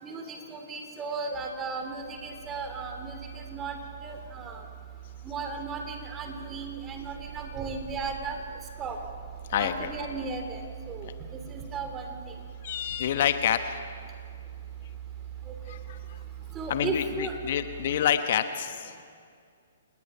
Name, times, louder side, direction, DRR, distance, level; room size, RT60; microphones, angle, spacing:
voice 1, 0.0-4.6 5.2-8.4 8.8-9.0 9.6-10.6 10.9-11.1 11.5-12.3 15.5-15.6 16.5-17.3, right 4 dB, 20° right, 5 dB, 3.1 m, -36 dB
sound 1, 1.3-18.0, right 10 dB, 45° right, 4.0 m, -43 dB
voice 2, 9.5-9.9 11.0-11.1 12.6-13.8 15.7-16.0 16.7-19.0, left 9 dB, 50° left, 9 dB, 1.0 m, -28 dB
28.5 x 19.5 x 5.7 m, 2.2 s
figure-of-eight pair, 125°, 0 cm